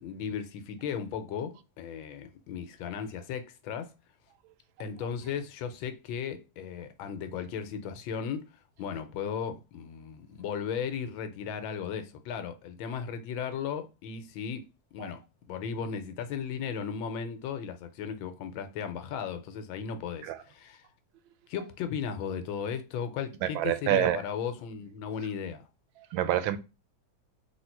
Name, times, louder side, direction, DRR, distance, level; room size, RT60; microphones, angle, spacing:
voice 1, 0.0-3.9 4.8-8.4 8.8-14.6 14.9-15.2 15.5-20.8 21.5-25.6, left 7 dB, 80° left, 1.4 m, -36 dB
voice 2, 23.4-24.2 26.1-26.6, right 13 dB, 85° right, 1.4 m, -27 dB
3.5 x 2.7 x 4.4 m
omnidirectional pair, 2.1 m